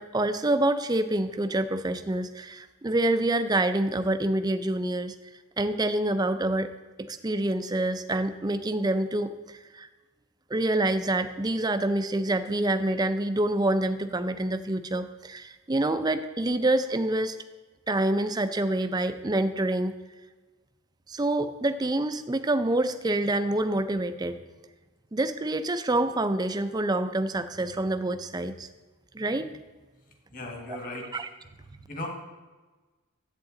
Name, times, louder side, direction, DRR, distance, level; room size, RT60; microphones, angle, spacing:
voice 1, 0.0-5.2 5.6-6.7 7.0-9.9 10.5-17.4 17.9-19.9 21.1-24.4 25.1-28.7 29.1-29.5 31.1-31.3, right 1 dB, 20° right, 9 dB, 0.4 m, -27 dB
voice 2, 30.3-31.2 31.9-32.1, left 2 dB, 40° left, 2 dB, 1.5 m, -37 dB
11.5 x 8.2 x 3.8 m, 1.3 s
head